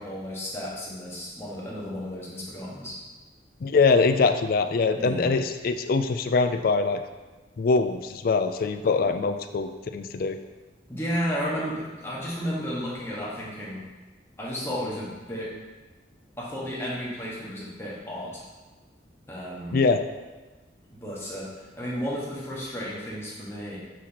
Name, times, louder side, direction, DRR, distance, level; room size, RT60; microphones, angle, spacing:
voice 1, 0.0-3.0 5.0-5.3 10.9-13.8 14.4-15.5 16.4-18.4 19.3-19.8 20.9-23.8, equal, 15° left, -7 dB, 1.5 m, -33 dB
voice 2, 3.6-7.0 7.6-10.4 19.7-20.0, left 4 dB, 55° left, 8 dB, 0.4 m, -23 dB
6.0 x 6.0 x 3.0 m, 1.2 s
head